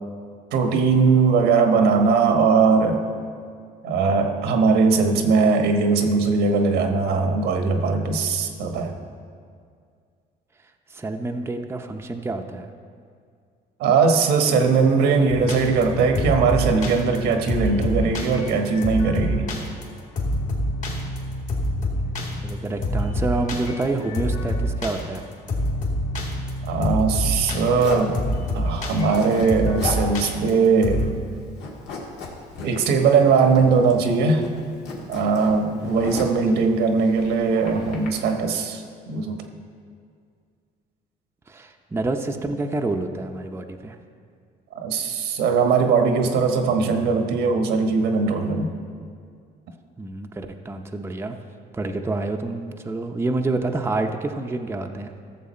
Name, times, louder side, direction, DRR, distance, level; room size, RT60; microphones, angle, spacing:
voice 1, 0.5-3.0 3.8-8.9 13.8-19.4 26.7-28.2 28.5-31.1 32.6-34.5 35.1-39.4 44.7-48.7, right 5 dB, 80° right, 5 dB, 1.2 m, -20 dB
voice 2, 10.9-12.7 22.4-25.3 35.7-36.3 41.5-44.0 50.0-51.4 51.7-55.1, right 2 dB, 15° right, 4 dB, 0.6 m, -28 dB
sound 1, 15.3-31.1, left 1 dB, 50° left, 2.3 m, -27 dB
Zipper (clothing), 27.8-28.1 28.9-29.5 29.7-30.1 30.4-30.5 30.9-31.3 31.6-32.7 33.4-34.0 34.3-36.4 37.0-38.1, left 3 dB, 85° left, 1.9 m, -34 dB
14.5 x 7.0 x 4.3 m, 2.2 s
cardioid pair, 110°, 17 cm